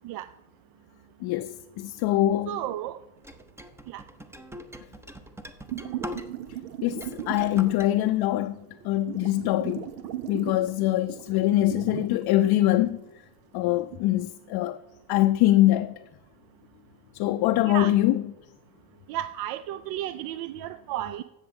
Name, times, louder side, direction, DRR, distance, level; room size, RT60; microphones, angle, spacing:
voice 1, 1.2-2.6 6.8-9.9 10.3-13.0 13.5-14.8 15.1-16.0 17.1-18.2, left 14 dB, 50° left, 0.5 m, -23 dB
voice 2, 2.5-3.0 3.9-4.0 17.6-17.9 19.1-21.2, right 13 dB, 50° right, 0.5 m, -33 dB
sound 1, 3.2-6.6 6.9-7.9, equal, 5° right, 0.6 m, -42 dB
sound 2, 5.7-7.9 8.7-12.2 12.6-12.7 13.8-14.0, right 11 dB, 80° right, 0.9 m, -37 dB
16.0 x 6.2 x 3.7 m
hypercardioid pair, 85°, 48 cm